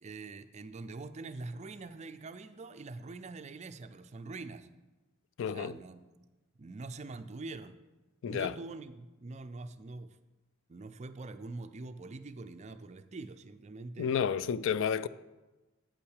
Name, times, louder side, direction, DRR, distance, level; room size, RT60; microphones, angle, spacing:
voice 1, 0.0-4.7 5.5-6.3 6.6-7.8 8.2-10.2 10.7-14.1, right 3 dB, 35° right, 0.4 m, -44 dB
voice 2, 5.4-5.7 8.2-8.5 14.0-15.1, left 7 dB, 65° left, 0.3 m, -31 dB
8.7 x 5.8 x 6.4 m
head